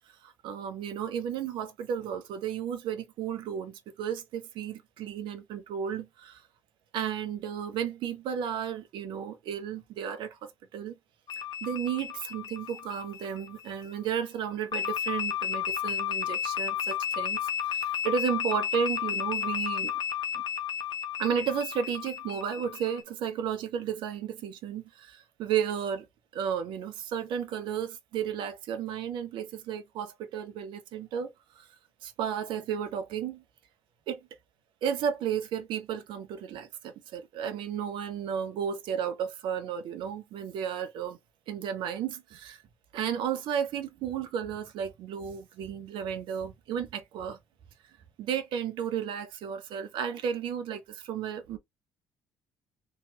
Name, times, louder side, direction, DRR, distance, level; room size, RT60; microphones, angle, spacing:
voice 1, 0.2-6.4 6.9-10.9 11.6-17.4 17.6-19.9 20.3-20.4 21.2-26.1 26.3-31.7 32.0-33.4 34.1-34.2 34.8-41.2 41.5-42.6 42.9-47.4 48.2-51.6, right 8 dB, 60° right, 0.6 m, -33 dB
sound 1, 11.3-13.8 14.7-23.0, left 9 dB, 50° left, 0.6 m, -33 dB
2.9 x 2.3 x 2.8 m
hypercardioid pair, 50°, 9 cm